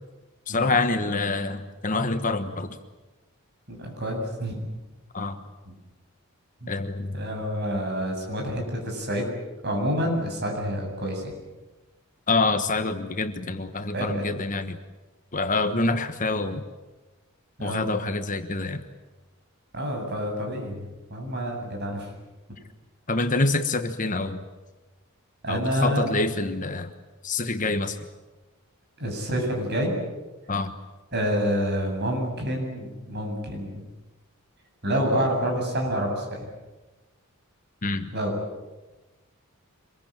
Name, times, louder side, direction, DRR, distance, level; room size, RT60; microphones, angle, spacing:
voice 1, 0.5-2.8 5.1-5.4 6.7-7.2 8.4-8.5 12.3-14.8 15.3-16.6 17.6-18.8 23.1-24.4 25.5-26.9 27.2-28.0 30.5-30.7 37.8-38.1, left 3 dB, 35° left, 9 dB, 1.3 m, -26 dB
voice 2, 3.7-4.6 6.6-6.7 7.1-9.3 9.6-11.3 13.9-14.1 15.6-15.8 17.6-17.9 19.7-22.1 25.4-26.1 29.0-30.0 31.1-33.8 34.8-36.5 38.1-38.4, equal, 50° right, 1 dB, 7.9 m, -28 dB
26.0 x 22.0 x 8.9 m, 1.2 s
head